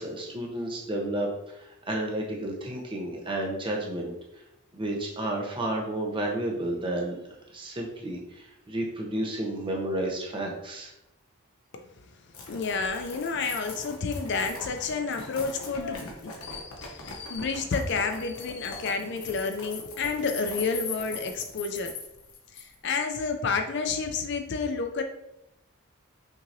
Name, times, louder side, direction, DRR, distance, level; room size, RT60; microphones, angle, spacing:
voice 1, 0.0-4.4 4.7-7.2 7.5-10.9, right 1 dB, 20° right, -1 dB, 0.7 m, -32 dB
sound 1, 12.3-22.9, left 4 dB, 80° left, 1.0 m, -41 dB
voice 2, 12.3-21.9 22.5-25.0, left 4 dB, 50° left, 5 dB, 0.4 m, -30 dB
5.9 x 2.8 x 2.6 m, 0.87 s
head